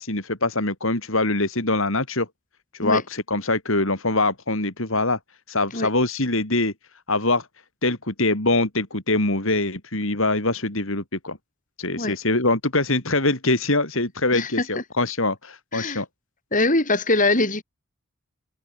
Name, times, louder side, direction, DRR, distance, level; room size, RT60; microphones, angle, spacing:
voice 1, 0.0-2.3 2.7-5.2 5.5-6.7 7.1-7.5 7.8-11.4 11.8-16.1, left 2 dB, 60° left, 4.2 m, -23 dB
voice 2, 14.3-14.7 15.7-16.0 16.5-17.6, left 2 dB, 35° left, 7.1 m, -22 dB
head